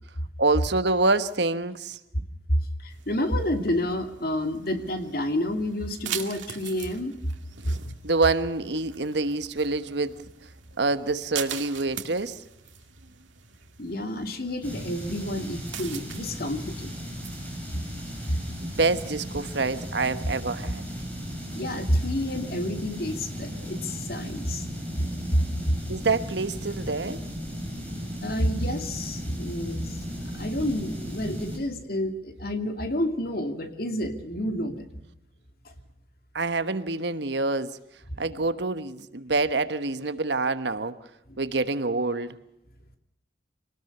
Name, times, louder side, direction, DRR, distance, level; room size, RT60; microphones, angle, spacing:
voice 1, 0.4-2.0 8.0-10.2 10.8-12.4 18.6-20.8 25.9-27.2 36.3-37.8 38.2-41.0 41.4-42.4, right 3 dB, 65° right, 1.2 m, -26 dB
voice 2, 2.5-7.1 7.8-7.9 13.8-17.0 21.5-24.7 25.3-25.8 28.2-30.0 30.3-35.0, left 1 dB, 50° left, 2.6 m, -29 dB
sound 1, 2.9-17.6, right 9 dB, 90° right, 2.3 m, -42 dB
sound 2, 14.6-31.6, equal, 10° left, 7.1 m, -36 dB
25.5 x 19.5 x 6.7 m
head